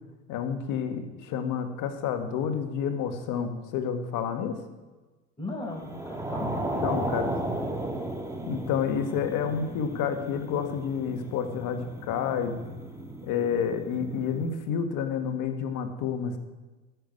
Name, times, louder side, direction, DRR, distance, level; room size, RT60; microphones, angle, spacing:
voice 1, 0.3-4.6 6.4-6.5 6.8-7.3 8.5-12.6 13.2-16.4, left 7 dB, 60° left, 7 dB, 1.8 m, -29 dB
voice 2, 5.4-7.1 7.5-7.6 9.0-9.2, left 2 dB, 15° left, -1 dB, 4.9 m, -39 dB
sound 1, 5.8-14.5, right 1 dB, 10° right, 2.2 m, -35 dB
13.5 x 6.5 x 9.4 m, 1.2 s
hypercardioid pair, 65°, 36 cm